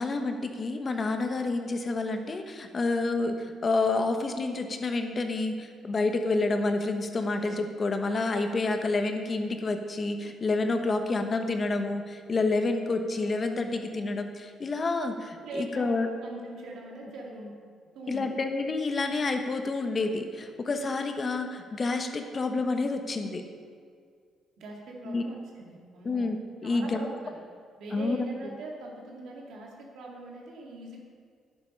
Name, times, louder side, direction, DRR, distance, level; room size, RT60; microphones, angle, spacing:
voice 1, 0.0-16.1 18.1-23.4 25.0-25.2 26.0-27.1 27.9-28.3, left 3 dB, 40° left, 6 dB, 1.1 m, -29 dB
voice 2, 15.4-17.5 17.9-18.3 24.6-26.3 26.6-27.3 27.8-31.0, right 1 dB, 75° right, -1 dB, 2.4 m, -41 dB
10.5 x 8.5 x 5.5 m, 2.1 s
cardioid pair, 90°, 0 cm